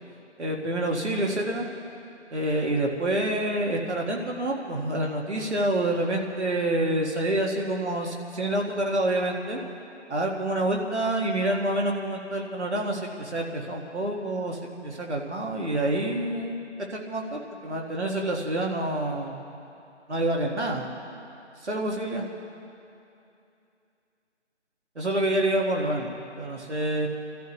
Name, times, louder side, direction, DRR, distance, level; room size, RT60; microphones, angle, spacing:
voice 1, 0.4-1.7 2.3-9.6 10.1-16.6 16.9-19.4 20.1-20.9 21.6-22.2 25.0-27.1, right 1 dB, 70° right, 0 dB, 1.9 m, -27 dB
29.0 x 13.5 x 3.1 m, 2.7 s
figure-of-eight pair, 175°, 35 cm